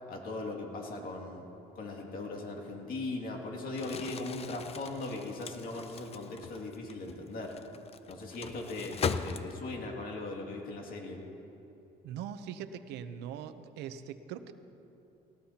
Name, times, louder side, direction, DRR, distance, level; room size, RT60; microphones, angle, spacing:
voice 1, 0.1-1.4 1.8-7.5 8.1-11.2, left 2 dB, 60° left, 0 dB, 2.3 m, -39 dB
Crumpling crinkling, 3.7-9.9, left 6 dB, 35° left, 0.6 m, -39 dB
voice 2, 12.0-14.5, right 8 dB, 85° right, 10 dB, 0.8 m, -41 dB
18.5 x 18.5 x 2.9 m, 2.8 s
cardioid pair, 110°, 17 cm